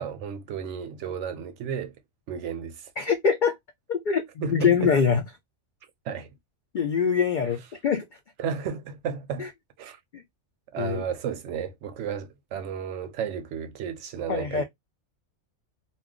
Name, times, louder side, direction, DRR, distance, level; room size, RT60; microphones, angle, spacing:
voice 1, 0.0-2.0 2.3-2.9 4.4-4.9 6.1-6.3 8.4-9.5 9.8-10.0 10.7-14.6, right 7 dB, 70° right, 0.8 m, -33 dB
voice 2, 3.0-3.5 3.9-5.2 6.7-8.1 9.4-9.5 10.1-10.2 10.8-11.0 14.3-14.6, left 6 dB, 85° left, 0.4 m, -24 dB
2.3 x 2.2 x 3.6 m
omnidirectional pair, 1.4 m